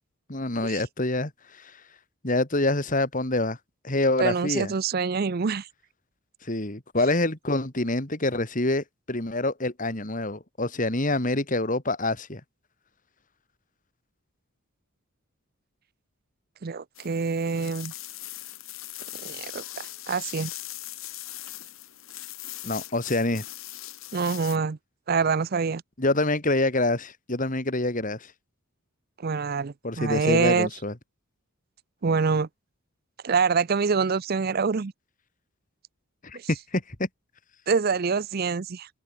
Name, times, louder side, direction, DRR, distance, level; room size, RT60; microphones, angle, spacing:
voice 1, 0.3-1.8 2.2-3.6 3.8-4.7 6.4-12.4 22.6-23.4 26.0-28.3 29.8-30.9 36.2-37.1, left 2 dB, 40° left, 2.5 m, -26 dB
voice 2, 4.2-5.7 16.6-17.9 19.2-20.5 24.1-24.8 25.1-25.8 29.2-30.7 32.0-32.5 33.2-34.9 36.3-36.5 37.7-38.9, right 5 dB, 45° right, 0.5 m, -25 dB
sound 1, 17.0-24.6, left 15 dB, 75° left, 3.7 m, -40 dB
open air
head